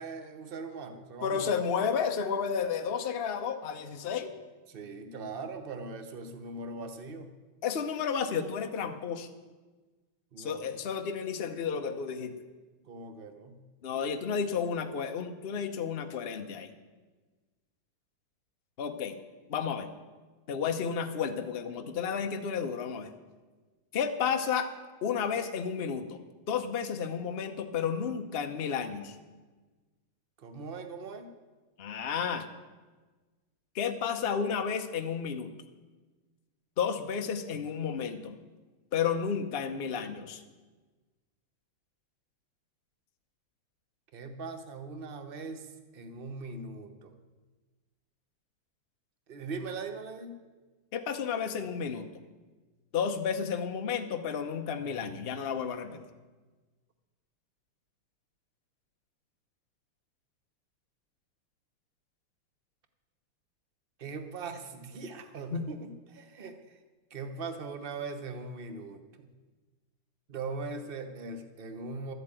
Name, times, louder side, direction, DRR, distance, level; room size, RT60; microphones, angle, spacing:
voice 1, 0.0-1.5 4.7-7.3 10.3-10.7 12.9-13.6 30.4-31.3 44.1-45.7 45.9-47.1 49.3-50.4 64.0-66.6 67.1-69.3 70.3-72.1, right 3 dB, 40° right, 8 dB, 0.8 m, -40 dB
voice 2, 1.2-4.3 7.6-9.3 10.4-12.3 13.8-16.7 18.8-19.2 19.5-19.9 20.5-23.1 23.9-24.7 25.0-26.2 26.5-29.2 31.8-32.4 33.7-35.5 36.8-38.4 38.9-40.4 50.9-52.1 52.9-56.0 65.5-65.6, left 7 dB, 90° left, 6 dB, 0.5 m, -32 dB
12.5 x 8.1 x 8.9 m, 1.3 s
omnidirectional pair, 2.4 m